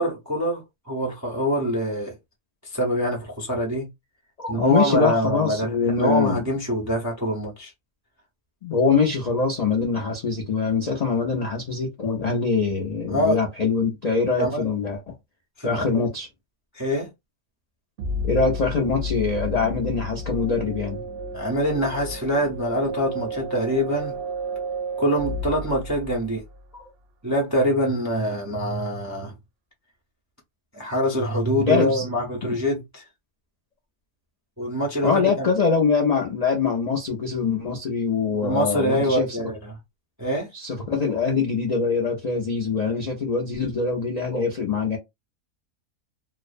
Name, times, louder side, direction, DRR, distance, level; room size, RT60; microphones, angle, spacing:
voice 1, 0.0-2.2 2.6-3.9 4.5-7.7 13.1-13.4 14.4-14.6 15.6-16.1 16.7-17.1 21.3-24.2 25.0-26.4 27.2-29.3 30.7-33.0 34.6-35.5 38.4-39.7 40.2-40.5, equal, 30° right, 0.3 m, -24 dB
voice 2, 4.4-6.4 8.6-15.1 15.6-16.3 18.2-21.0 26.7-26.8 31.6-32.1 32.4-32.6 35.0-39.5 40.5-45.0, left 5 dB, 80° left, 0.3 m, -23 dB
sound 1, 18.0-26.6, equal, 60° right, 0.6 m, -32 dB
2.5 x 2.0 x 2.5 m
omnidirectional pair, 1.6 m